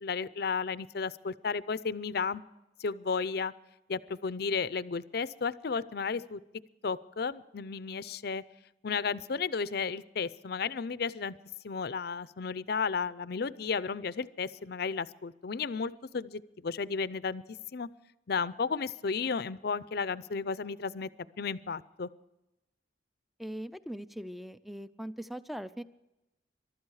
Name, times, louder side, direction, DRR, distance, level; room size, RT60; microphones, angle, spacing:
voice 1, 0.0-2.4 2.8-3.5 3.9-6.4 6.8-8.4 8.8-11.4 11.6-17.4 17.7-17.9 18.3-21.1 21.4-22.1, left 5 dB, 60° left, 17 dB, 0.5 m, -33 dB
voice 2, 23.4-25.8, equal, ahead, 14 dB, 0.5 m, -40 dB
22.5 x 12.5 x 4.8 m, 0.95 s
head